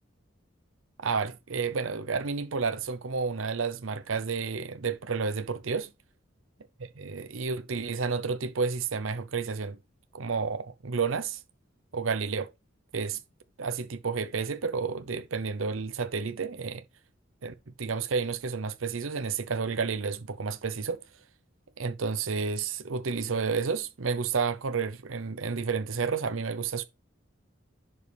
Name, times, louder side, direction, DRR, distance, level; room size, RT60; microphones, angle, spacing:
voice 1, 1.0-5.9 7.0-9.8 10.1-11.4 11.9-12.5 12.9-13.2 13.6-16.8 17.4-21.0 21.8-26.8, right 5 dB, 90° right, 0.7 m, -31 dB
11.0 x 5.3 x 3.4 m
head